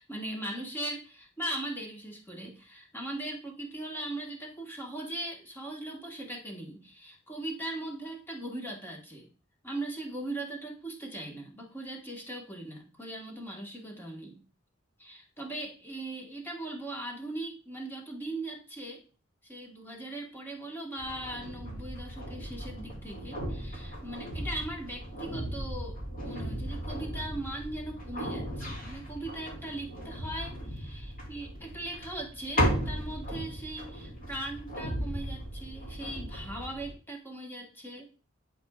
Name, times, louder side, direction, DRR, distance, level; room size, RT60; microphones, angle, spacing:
voice 1, 0.0-9.3 9.6-14.4 15.0-19.0 19.4-38.1, right 1 dB, 10° left, 0 dB, 1.4 m, -39 dB
sound 1, 21.0-36.9, equal, 50° left, 3.1 m, -36 dB
11.5 x 4.2 x 2.4 m, 0.36 s
head